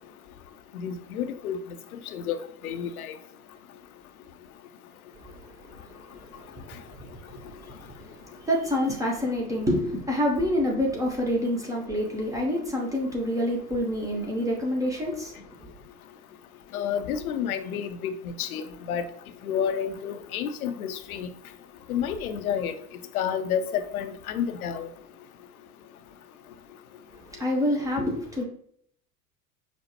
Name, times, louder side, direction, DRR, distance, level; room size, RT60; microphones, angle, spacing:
voice 1, 0.7-1.6 2.1-2.4 2.6-3.1 16.7-18.1 18.4-19.0 19.4-21.3 21.9-22.7 23.1-24.9, left 8 dB, 65° left, 9 dB, 0.5 m, -30 dB
voice 2, 5.1-15.7 27.1-28.4, left 1 dB, 10° right, -2 dB, 0.4 m, -28 dB
5.1 x 2.1 x 2.8 m, 0.65 s
figure-of-eight pair, 75°, 46 cm